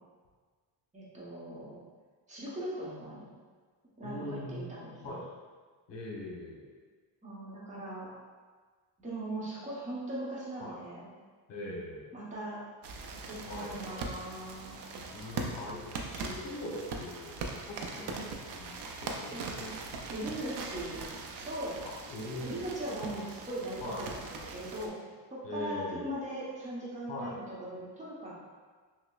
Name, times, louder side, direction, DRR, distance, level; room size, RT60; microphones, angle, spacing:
voice 1, 0.9-1.8 2.3-3.3 4.0-5.2 7.2-8.1 9.0-11.0 12.1-12.6 13.3-14.9 17.9-18.3 19.3-19.7 20.1-21.0 21.4-21.7 22.4-24.9 25.3-28.3, right 1 dB, 15° right, -7 dB, 0.8 m, -39 dB
voice 2, 4.0-4.7 5.0-5.2 5.9-6.7 10.6-10.8 11.5-12.1 13.5-14.1 15.1-17.3 17.7-19.6 19.9-20.1 21.8-22.6 23.0-23.1 23.8-24.0 25.4-26.1 27.1-27.4, left 1 dB, 75° left, -3 dB, 1.0 m, -41 dB
sound 1, 12.8-24.9, right 3 dB, 65° right, 0.5 m, -41 dB
5.9 x 2.0 x 2.3 m, 1.5 s
cardioid pair, 170°, 44 cm